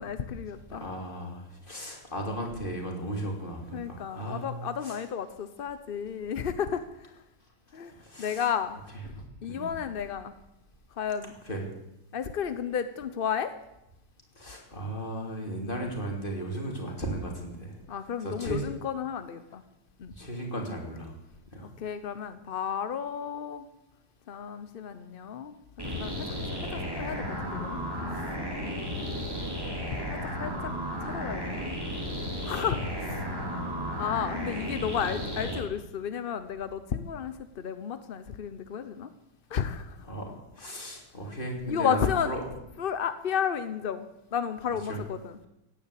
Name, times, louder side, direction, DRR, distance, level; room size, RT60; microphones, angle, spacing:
voice 1, 0.0-0.9 3.7-7.1 7.7-8.8 9.4-10.4 11.0-11.3 12.1-13.5 17.9-19.6 20.0-20.1 21.8-23.7 24.3-25.5 25.9-27.8 28.6-29.4 30.0-30.7 31.0-31.7 32.4-33.2 34.0-39.1 39.5-40.0 40.7-40.8 41.7-42.3 42.8-45.4, left 7 dB, 55° left, 11 dB, 0.6 m, -33 dB
voice 2, 0.7-4.5 4.8-5.0 8.0-8.4 9.1-9.2 9.5-9.7 11.5-11.6 14.4-17.8 18.2-18.6 20.2-21.1 21.5-21.7 32.7-32.9 40.1-40.3 40.5-42.4 44.9-45.0, right 1 dB, 25° left, 1 dB, 3.3 m, -35 dB
sound 1, 25.8-35.6, equal, 10° right, 3.4 m, -34 dB
16.5 x 9.8 x 8.4 m, 0.88 s
omnidirectional pair, 2.0 m